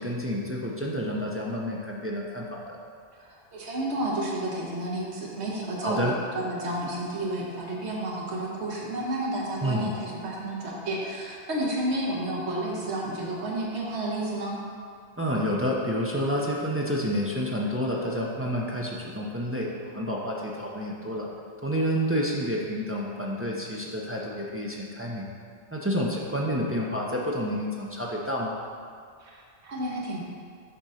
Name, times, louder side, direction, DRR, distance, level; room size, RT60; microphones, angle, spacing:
voice 1, 0.0-2.8 5.8-6.1 9.6-9.9 15.2-21.3 21.6-25.3 25.7-28.5, equal, 25° right, -3 dB, 0.3 m, -29 dB
voice 2, 3.1-14.6 29.2-30.2, right 1 dB, 70° right, -4 dB, 1.4 m, -31 dB
6.0 x 3.9 x 5.5 m, 2.2 s
omnidirectional pair, 1.2 m